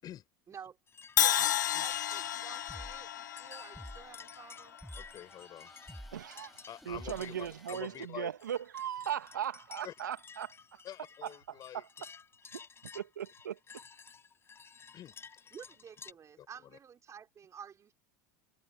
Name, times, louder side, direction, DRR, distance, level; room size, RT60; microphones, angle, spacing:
voice 1, 0.5-0.8 1.2-4.8 15.5-17.9, right 7 dB, 30° right, 5.1 m, -50 dB
sound 1, 0.9-16.1, left 6 dB, 25° left, 7.9 m, -53 dB
Crash cymbal, 1.2-5.2, left 11 dB, 85° left, 0.6 m, -32 dB
sound 2, 1.9-7.8, equal, ahead, 4.4 m, -52 dB
voice 2, 4.9-5.7 6.7-8.3 9.8-9.9 10.8-11.8 14.9-15.6 16.4-16.8, left 11 dB, 40° left, 7.6 m, -47 dB
voice 3, 6.1-10.8 11.2-11.9 12.5-12.6 12.9-13.6, right 9 dB, 85° right, 1.8 m, -38 dB
hypercardioid pair, 85°, 10 cm